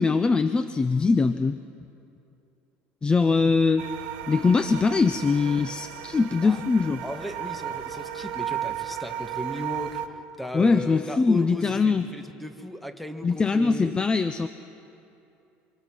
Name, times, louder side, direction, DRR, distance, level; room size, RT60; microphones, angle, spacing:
voice 1, 0.0-1.6 3.0-3.9 4.3-7.0 10.5-12.0 13.2-14.5, left 4 dB, 20° left, 11 dB, 0.6 m, -22 dB
sound 1, 3.8-10.1, right 10 dB, 90° right, 1.4 m, -34 dB
voice 2, 7.0-13.9, left 1 dB, ahead, 7 dB, 1.6 m, -36 dB
27.0 x 25.5 x 6.2 m, 2.7 s
cardioid pair, 120°, 5 cm